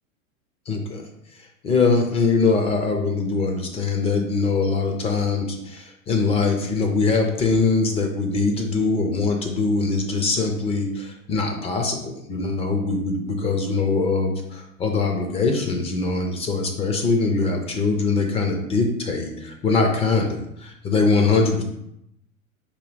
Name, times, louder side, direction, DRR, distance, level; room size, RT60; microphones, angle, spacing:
voice 1, 0.7-1.0 1.6-21.6, left 4 dB, 15° left, 3 dB, 0.4 m, -22 dB
4.5 x 2.8 x 3.9 m, 0.80 s
hypercardioid pair, 95°, 41 cm